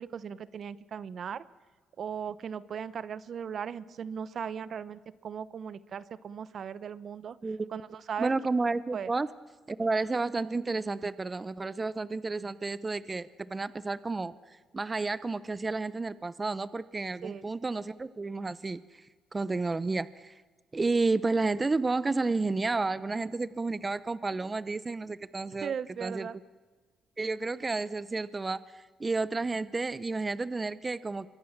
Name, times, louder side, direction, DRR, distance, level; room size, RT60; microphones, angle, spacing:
voice 1, 0.0-1.4 2.0-7.4 7.7-8.3 8.9-9.1 17.2-17.4 25.6-26.4, right 7 dB, 55° right, 18 dB, 0.9 m, -38 dB
voice 2, 8.2-9.3 9.7-19.0 19.3-20.4 20.7-25.7 26.0-26.3 27.2-31.3, right 3 dB, 25° right, 18 dB, 0.7 m, -31 dB
26.0 x 23.0 x 7.3 m, 1.4 s
cardioid pair, 90°, 0 cm